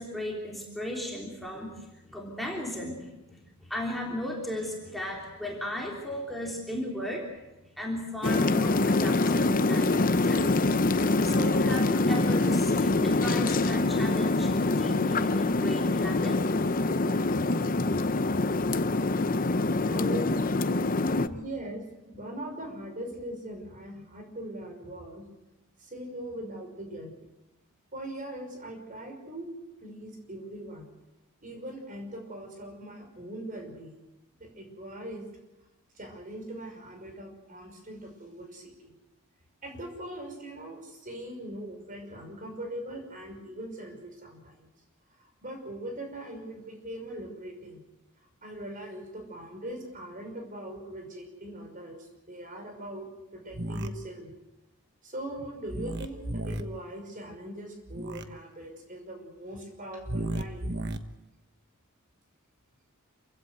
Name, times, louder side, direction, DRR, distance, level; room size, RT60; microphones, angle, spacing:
voice 1, 0.0-7.2 7.6-10.9 11.2-18.4, left 1 dB, ahead, -2 dB, 3.4 m, -36 dB
sound 1, 8.2-21.3, left 2 dB, 40° left, 0.7 m, -25 dB
voice 2, 19.8-20.4 21.2-25.2 25.8-27.2 27.9-29.5 29.8-30.9 31.4-33.9 34.4-35.3 35.9-38.9 39.6-44.7 45.2-47.8 48.4-52.0 52.3-54.3 55.0-60.7, right 1 dB, 40° right, 3 dB, 5.7 m, -41 dB
sound 2, 53.5-53.9 55.7-56.6 57.9-58.2 60.0-61.0, right 1 dB, 55° right, 1.3 m, -33 dB
27.0 x 16.5 x 8.1 m, 1.0 s
head